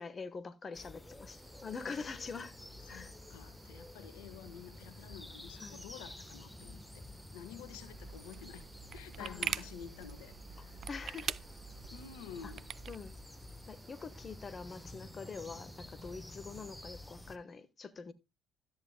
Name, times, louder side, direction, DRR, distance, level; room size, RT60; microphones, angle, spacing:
voice 1, 0.0-2.5 2.9-3.2 5.6-5.8 9.2-9.6 10.9-11.5 12.4-12.5 12.9-13.2 13.7-18.1, left 5 dB, 35° left, 1.2 m, -45 dB
sound 1, 0.7-17.4, left 1 dB, 10° left, 1.2 m, -51 dB
sound 2, 1.3-16.8, right 4 dB, 30° right, 1.4 m, -63 dB
voice 2, 2.9-7.0 7.3-8.6 8.9-10.8 11.9-12.6, left 9 dB, 75° left, 1.4 m, -50 dB
sound 3, 7.7-13.0, right 8 dB, 50° right, 0.5 m, -43 dB
13.0 x 10.0 x 2.2 m
hypercardioid pair, 60°, 0 cm